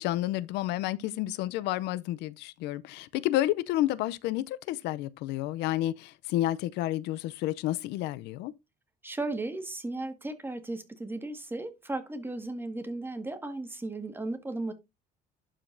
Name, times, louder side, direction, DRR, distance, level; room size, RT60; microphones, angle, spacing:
voice 1, 0.0-8.5, left 14 dB, 90° left, 0.6 m, -30 dB
voice 2, 9.0-14.7, right 2 dB, 15° right, 1.8 m, -35 dB
11.5 x 5.0 x 2.6 m
cardioid pair, 110°, 17 cm